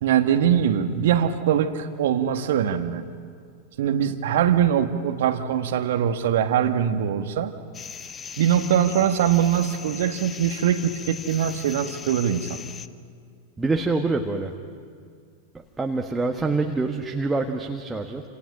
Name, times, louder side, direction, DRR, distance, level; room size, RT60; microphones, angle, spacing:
voice 1, 0.0-3.0 3.8-7.5 8.4-12.6, right 9 dB, 55° right, 9 dB, 1.6 m, -22 dB
sound 1, 7.7-12.9, left 6 dB, 20° left, 0.9 m, -39 dB
voice 2, 13.6-14.5 15.5-18.2, right 3 dB, 10° right, 2 dB, 1.5 m, -26 dB
29.5 x 28.0 x 6.2 m, 2.2 s
figure-of-eight pair, 90°, 0 cm